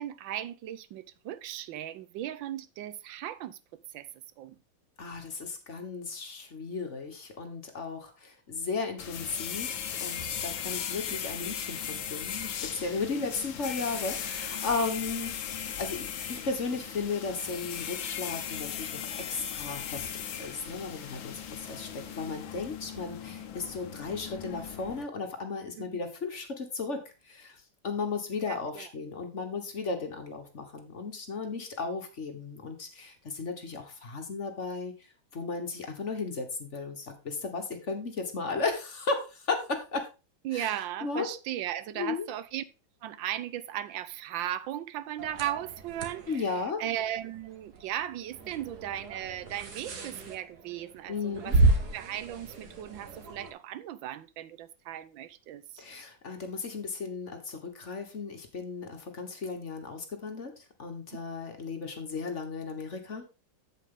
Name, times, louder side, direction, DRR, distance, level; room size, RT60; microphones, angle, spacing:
voice 1, 0.0-3.6 3.9-4.1 4.4-4.6 25.8-26.0 28.5-28.9 40.4-42.6 43.0-46.5 46.8-51.6 51.9-55.8, right 12 dB, 90° right, 1.4 m, -37 dB
voice 2, 5.0-27.6 27.8-34.9 35.3-40.1 40.5-40.7 41.0-41.3 41.9-42.3 46.3-46.8 51.1-51.6 55.8-63.2, left 4 dB, 40° left, 1.5 m, -35 dB
sound 1, 9.0-25.0, left 8 dB, 90° left, 1.8 m, -37 dB
sound 2, 45.2-53.5, right 2 dB, 60° right, 1.9 m, -32 dB
8.3 x 7.7 x 3.8 m
omnidirectional pair, 2.0 m